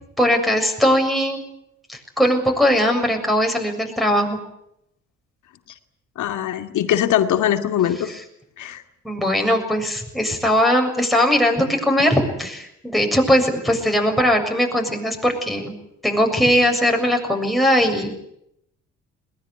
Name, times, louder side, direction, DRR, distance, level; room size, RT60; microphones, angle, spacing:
voice 1, 0.2-1.4 1.9-4.4 9.0-15.7 16.0-18.1, equal, ahead, 1 dB, 7.1 m, -19 dB
voice 2, 6.2-8.1 8.6-8.8, left 11 dB, 75° left, 6 dB, 2.4 m, -21 dB
21.5 x 19.5 x 9.8 m, 0.77 s
cardioid pair, 90°, 30 cm